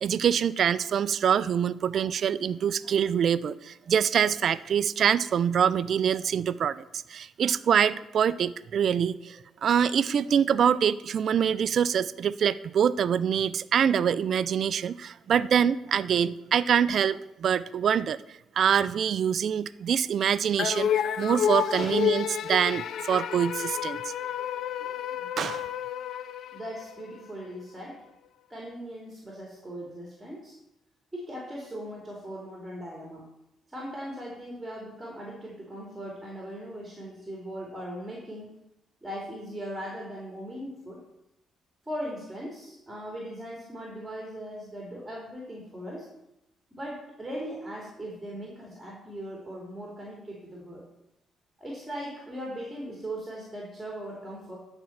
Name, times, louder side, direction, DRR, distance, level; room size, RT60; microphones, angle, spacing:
voice 1, 0.0-18.2 18.6-24.1 25.4-25.7, right 8 dB, 60° right, 16 dB, 0.4 m, -25 dB
sound 1, 20.6-27.1, left 9 dB, 70° left, 0.4 m, -30 dB
voice 2, 26.5-28.0 28.5-30.6 31.1-33.2 33.7-38.5 39.0-41.0 41.9-46.1 46.7-50.8 51.6-54.6, equal, 10° right, -3 dB, 2.8 m, -39 dB
10.5 x 4.5 x 7.3 m, 0.87 s
cardioid pair, 90°, 0 cm